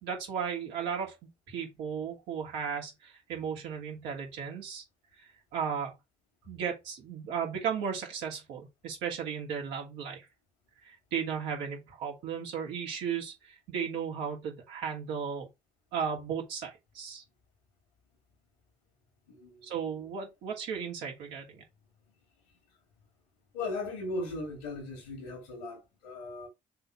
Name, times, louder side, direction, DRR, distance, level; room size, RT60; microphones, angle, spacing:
voice 1, 0.0-4.8 5.5-6.0 6.5-10.3 10.8-15.5 15.9-17.2 19.6-21.6, right 7 dB, 75° right, 2.7 m, -35 dB
voice 2, 19.3-19.7 23.5-26.5, left 2 dB, 85° left, 2.8 m, -38 dB
6.6 x 4.2 x 4.7 m
hypercardioid pair, 40°, 19 cm